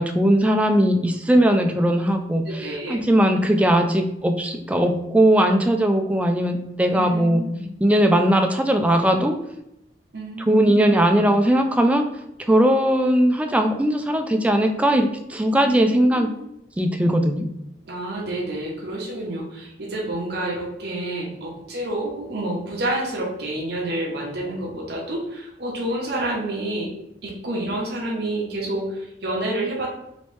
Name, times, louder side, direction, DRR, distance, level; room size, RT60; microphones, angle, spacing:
voice 1, 0.0-7.4 7.8-9.3 10.5-12.0 12.5-16.3 16.8-17.4, right 1 dB, 10° right, 5 dB, 0.3 m, -19 dB
voice 2, 2.4-3.3 6.9-7.6 10.1-10.8 15.6-15.8 16.2-16.4 17.9-26.9 27.2-29.9, right 1 dB, 65° right, -3 dB, 0.9 m, -29 dB
3.1 x 3.0 x 3.1 m, 0.80 s
head